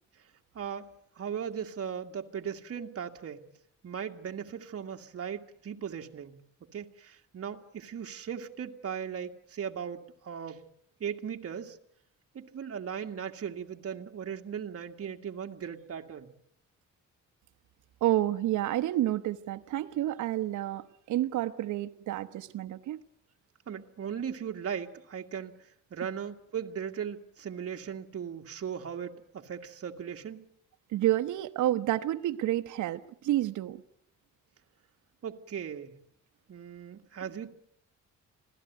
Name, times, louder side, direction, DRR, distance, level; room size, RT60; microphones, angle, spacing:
voice 1, 0.5-0.9 1.2-3.5 3.8-6.4 6.7-10.6 11.0-11.8 12.3-16.3 23.7-30.5 35.2-35.9 36.5-37.5, right 8 dB, 50° right, 2.0 m, -38 dB
voice 2, 18.0-23.0 30.9-33.8, right 14 dB, 75° right, 1.0 m, -29 dB
26.5 x 17.5 x 9.3 m
cardioid pair, 90°, 30 cm